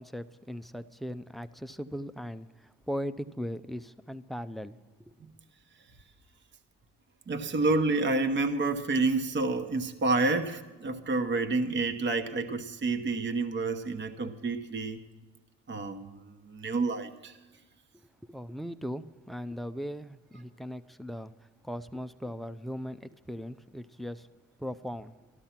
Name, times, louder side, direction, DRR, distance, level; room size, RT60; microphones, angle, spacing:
voice 1, 0.0-5.3 17.9-24.3 24.6-25.2, equal, ahead, 13 dB, 0.5 m, -39 dB
voice 2, 7.3-15.0 15.7-17.4, right 3 dB, 40° right, 6 dB, 1.0 m, -29 dB
13.5 x 12.0 x 5.8 m, 1.2 s
cardioid pair, 90°, 30 cm